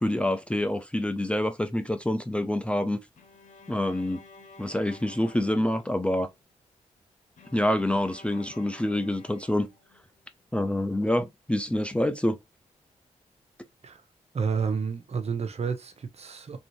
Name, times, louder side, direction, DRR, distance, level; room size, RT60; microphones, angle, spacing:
voice 1, 0.0-3.0 3.7-4.2 4.6-6.3 7.5-9.7 10.5-12.4, left 1 dB, 10° left, 0.5 m, -26 dB
Bowed string instrument, 3.2-6.4 7.4-10.3, left 3 dB, 65° left, 1.0 m, -52 dB
voice 2, 14.3-16.6, right 5 dB, 50° right, 0.8 m, -30 dB
3.1 x 2.6 x 3.0 m
supercardioid pair, 50°, 14 cm